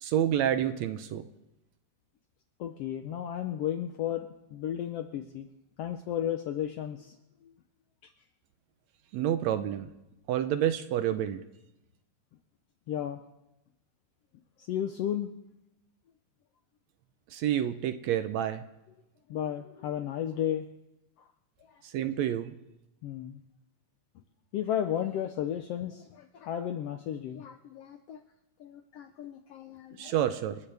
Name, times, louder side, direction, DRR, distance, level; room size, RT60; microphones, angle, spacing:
voice 1, 0.0-1.2 9.1-9.9 10.3-11.4 17.3-18.6 21.8-22.5 30.0-30.6, right 11 dB, 75° right, 10 dB, 1.8 m, -28 dB
voice 2, 2.6-5.5 5.8-7.1 12.9-13.2 14.7-15.3 19.3-20.7 23.0-23.4 24.5-28.2 28.6-30.1, left 10 dB, 75° left, 7 dB, 1.4 m, -33 dB
28.5 x 13.0 x 3.4 m, 0.93 s
omnidirectional pair, 3.5 m